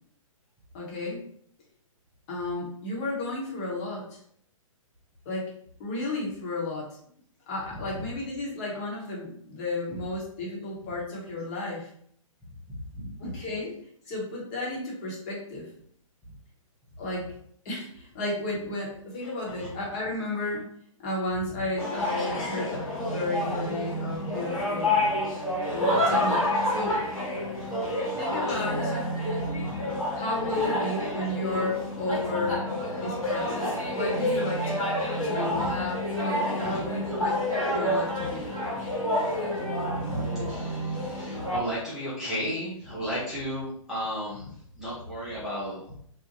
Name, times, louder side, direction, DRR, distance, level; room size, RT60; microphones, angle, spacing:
voice 1, 0.7-1.2 2.3-4.2 5.2-5.5 5.8-7.0 7.5-11.9 13.2-13.7 14.1-15.7 17.0-17.3 17.6-20.7 21.0-25.0 25.7-27.1 28.1-29.0 30.1-34.8 35.2-37.4 37.7-38.5, left 2 dB, 30° left, -4 dB, 0.9 m, -33 dB
voice 2, 12.7-13.3 19.2-19.7 27.6-27.7 28.5-28.6 29.6-29.7 35.5-35.7 36.6-36.8 39.2-39.3 39.9-46.0, equal, 5° right, -11 dB, 0.6 m, -35 dB
sound 1, 21.8-41.6, left 1 dB, 85° left, 1.4 m, -29 dB
2.7 x 2.1 x 2.8 m, 0.64 s
figure-of-eight pair, 120°, 18 cm